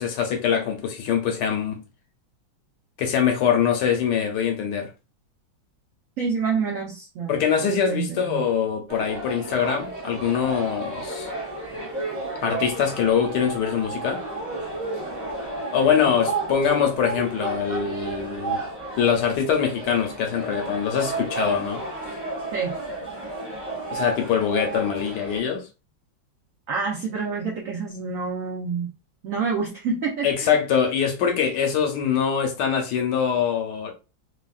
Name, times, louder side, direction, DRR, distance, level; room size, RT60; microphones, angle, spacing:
voice 1, 0.0-1.8 3.0-4.9 7.3-11.3 12.4-14.2 15.7-18.6 19.0-21.8 23.9-25.7 30.2-33.9, left 7 dB, 75° left, 1.2 m, -23 dB
voice 2, 6.2-7.4 7.9-8.5 16.0-16.2 22.5-22.7 26.7-28.9 29.2-30.6, right 5 dB, 75° right, 0.7 m, -28 dB
sound 1, 8.9-25.4, right 3 dB, 15° right, 0.8 m, -32 dB
3.5 x 2.1 x 2.3 m
omnidirectional pair, 2.1 m